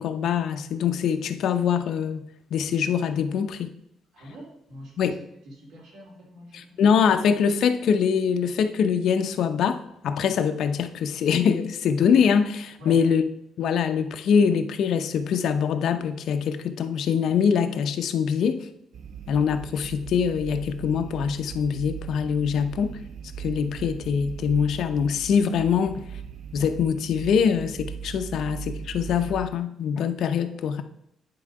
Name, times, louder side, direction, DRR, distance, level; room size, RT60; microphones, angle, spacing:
voice 1, 0.0-2.2 2.5-3.7 5.0-5.2 6.5-13.2 13.6-18.6 19.3-23.0 23.4-26.0 26.5-30.8, left 7 dB, 60° left, 7 dB, 0.6 m, -23 dB
voice 2, 4.1-6.8 12.8-13.1, equal, 75° right, -2 dB, 2.9 m, -45 dB
sound 1, 18.9-29.5, right 7 dB, 50° right, 0.5 m, -39 dB
9.7 x 3.6 x 4.8 m, 0.77 s
cardioid pair, 160°, 0 cm